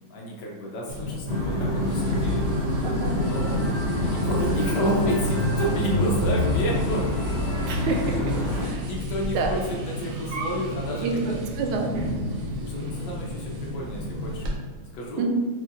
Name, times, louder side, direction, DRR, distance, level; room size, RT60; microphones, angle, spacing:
voice 1, 0.0-2.4 3.2-3.5 3.9-7.0 8.4-11.4 12.3-14.5 14.9-15.3, equal, 70° left, -2 dB, 1.1 m, -31 dB
sound 1, 0.9-14.5, left 1 dB, 70° right, 1.1 m, -31 dB
sound 2, 1.3-8.7, left 1 dB, 50° left, 2.1 m, -27 dB
voice 2, 2.8-3.1 7.7-8.4 8.6-8.9 9.3-9.5 11.0-11.1 11.6-11.9 15.2-15.3, right 3 dB, 85° right, 2 dB, 1.4 m, -27 dB
4.4 x 3.2 x 2.4 m, 1.5 s
omnidirectional pair, 2.2 m